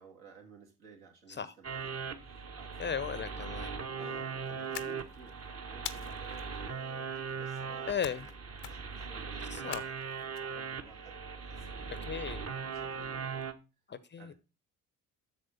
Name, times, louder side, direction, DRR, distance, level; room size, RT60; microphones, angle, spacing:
voice 1, 0.0-2.9 4.0-8.4 8.6-9.9 10.4-13.5 14.2-14.3, right 5 dB, 65° right, 2.7 m, -56 dB
sound 1, 1.6-13.5, right 6 dB, 30° right, 1.2 m, -39 dB
voice 2, 2.8-3.8 4.0-4.2 7.9-8.3 9.5-9.9 12.1-12.4 13.9-14.3, left 7 dB, 25° left, 0.6 m, -36 dB
sound 2, 4.7-5.3 5.9-6.4 8.0-8.3 8.6-9.0 9.7-10.4, left 12 dB, 80° left, 0.7 m, -43 dB
8.2 x 6.4 x 4.0 m
figure-of-eight pair, 45°, 45 cm